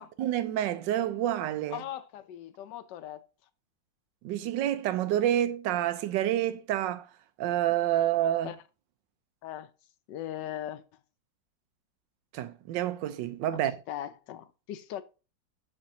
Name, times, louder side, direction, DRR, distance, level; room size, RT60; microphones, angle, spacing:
voice 1, 0.0-1.8 4.2-7.1 7.4-8.5 12.3-13.7, right 12 dB, 75° right, 1.3 m, -28 dB
voice 2, 1.7-3.3 8.4-8.6 9.4-9.7 10.1-10.8 13.6-15.0, left 11 dB, 75° left, 1.2 m, -39 dB
7.6 x 5.5 x 2.7 m
omnidirectional pair, 2.1 m